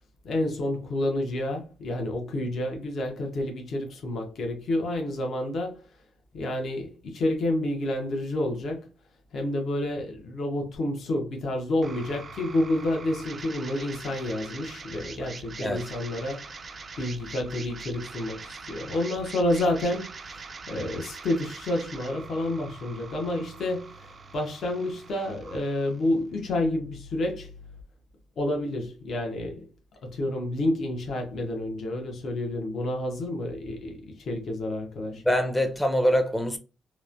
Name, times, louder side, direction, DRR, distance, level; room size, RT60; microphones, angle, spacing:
voice 1, 0.2-5.8 6.3-8.9 9.3-16.5 17.0-27.5 28.4-29.7 30.0-35.2, left 1 dB, 60° left, 0.8 m, -29 dB
sound 1, 11.8-27.8, right 3 dB, 40° right, 0.3 m, -43 dB
voice 2, 35.2-36.6, equal, 10° left, 0.6 m, -24 dB
3.0 x 2.1 x 2.4 m
cardioid pair, 90°, 0 cm